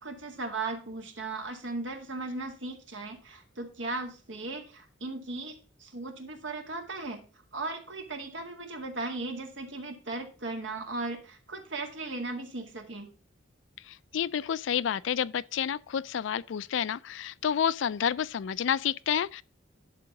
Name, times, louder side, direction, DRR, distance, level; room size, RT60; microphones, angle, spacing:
voice 1, 0.0-7.2 7.5-13.1, right 3 dB, 75° right, 2.0 m, -37 dB
voice 2, 13.9-19.4, left 8 dB, 70° left, 0.4 m, -29 dB
11.0 x 3.8 x 5.8 m
head